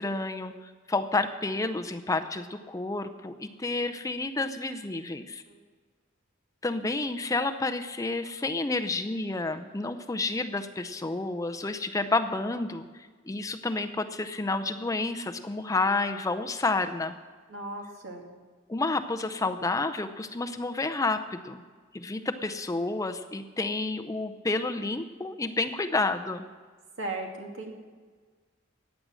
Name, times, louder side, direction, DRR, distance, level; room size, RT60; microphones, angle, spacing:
voice 1, 0.0-5.4 6.6-17.2 18.7-21.6 21.9-26.5, left 3 dB, 15° left, 8 dB, 0.5 m, -30 dB
voice 2, 17.5-18.2 27.0-27.7, right 2 dB, 70° right, 1 dB, 2.5 m, -36 dB
15.5 x 9.5 x 6.2 m, 1.5 s
head